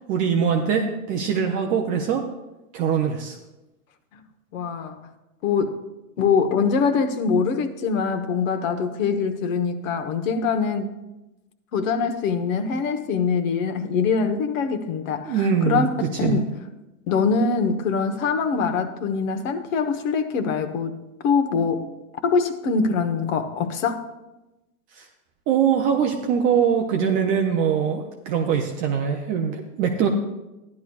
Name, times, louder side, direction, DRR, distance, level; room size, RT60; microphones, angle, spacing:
voice 1, 0.1-2.2 2.7-3.4 15.3-16.4 24.9-25.1 25.5-30.1, right 7 dB, 20° right, 3 dB, 0.3 m, -22 dB
voice 2, 4.5-5.0 5.4-5.8 6.2-10.9 11.7-15.4 15.6-15.9 16.2-16.6 17.1-21.9 22.2-24.0, left 5 dB, 60° left, 8 dB, 1.2 m, -23 dB
13.5 x 10.5 x 2.3 m, 1.0 s
hypercardioid pair, 125°, 44 cm